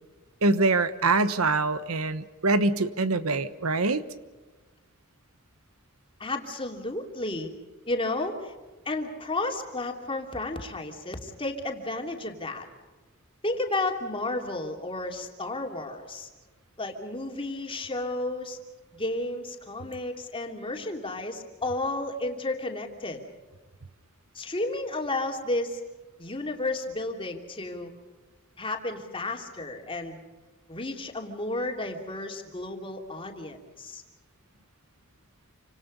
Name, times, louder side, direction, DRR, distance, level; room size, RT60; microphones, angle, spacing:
voice 1, 0.4-4.0, right 3 dB, 85° right, 12 dB, 1.2 m, -24 dB
voice 2, 6.2-7.5 7.9-8.5 8.8-12.7 13.4-16.3 16.8-18.6 19.0-23.2 24.3-25.8 26.2-27.9 28.6-30.2 30.7-34.0, left 2 dB, 25° left, 2 dB, 3.0 m, -32 dB
29.0 x 26.0 x 5.4 m, 1.3 s
head